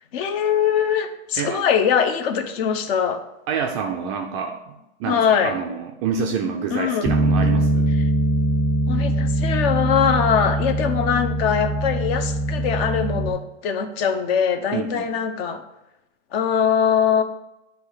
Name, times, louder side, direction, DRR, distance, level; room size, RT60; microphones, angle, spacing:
voice 1, 0.1-3.2 5.1-5.6 6.7-7.1 8.9-15.6 16.3-17.2, left 7 dB, 50° left, 8 dB, 0.9 m, -22 dB
voice 2, 3.5-7.9 14.7-15.1, right 6 dB, 25° right, 3 dB, 0.3 m, -27 dB
Bass guitar, 7.0-13.3, right 1 dB, 10° left, 0.6 m, -22 dB
9.4 x 3.2 x 4.9 m, 0.91 s
hypercardioid pair, 135°, 39 cm